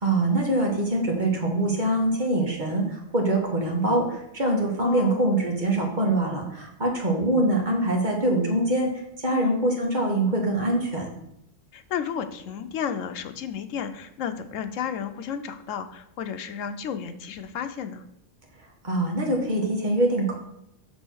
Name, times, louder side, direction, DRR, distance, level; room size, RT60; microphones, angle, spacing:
voice 1, 0.0-8.9 9.2-11.1 18.8-20.4, right 1 dB, 35° right, 0 dB, 1.6 m, -24 dB
voice 2, 4.8-5.4 9.3-9.7 11.7-18.0, left 8 dB, 90° left, 9 dB, 1.0 m, -32 dB
6.3 x 4.2 x 6.2 m, 0.80 s
omnidirectional pair, 1.3 m